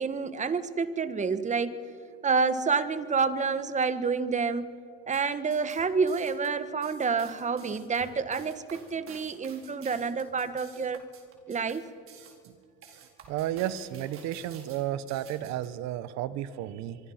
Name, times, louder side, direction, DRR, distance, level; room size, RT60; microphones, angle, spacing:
voice 1, 0.0-1.8 2.2-4.7 5.1-11.0 11.5-11.8, right 5 dB, 25° right, 12 dB, 1.5 m, -28 dB
sound 1, 5.0-15.7, right 7 dB, 50° right, 4.4 m, -52 dB
voice 2, 12.9-17.0, right 12 dB, 70° right, 14 dB, 1.2 m, -33 dB
25.0 x 24.5 x 5.9 m, 2.3 s
cardioid pair, 115°, 29 cm